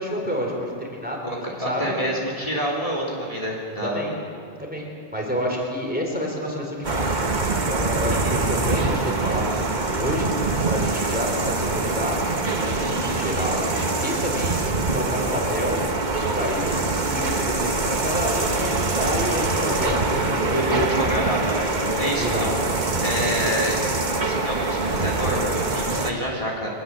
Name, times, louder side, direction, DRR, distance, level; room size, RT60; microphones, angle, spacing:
voice 1, 0.0-1.2 1.5-1.8 3.8-4.2 4.6-7.2 7.7-10.3 10.6-12.2 12.6-13.6 14.0-14.6 14.9-15.9 16.4-17.7 18.0-20.5 22.2-22.5, equal, 10° right, -1 dB, 4.0 m, -29 dB
voice 2, 1.2-4.1 8.2-8.3 13.3-13.5 20.4-22.5 23.0-23.8 24.2-26.7, equal, 35° left, -2 dB, 3.6 m, -27 dB
sound 1, 6.8-26.1, right 3 dB, 45° right, 1.4 m, -24 dB
23.5 x 19.5 x 7.5 m, 2.3 s
omnidirectional pair, 1.1 m